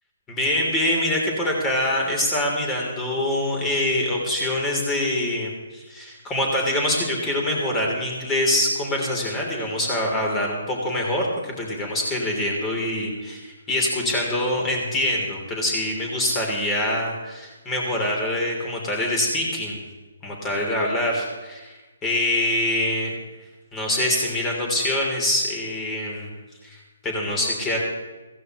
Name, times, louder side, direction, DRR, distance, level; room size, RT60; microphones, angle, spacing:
voice 1, 0.3-19.8 20.2-21.7 22.0-23.1 23.7-26.3 26.6-27.8, left 1 dB, 15° left, -1 dB, 3.3 m, -24 dB
15.5 x 15.5 x 3.1 m, 1.2 s
figure-of-eight pair, 145°, 0 cm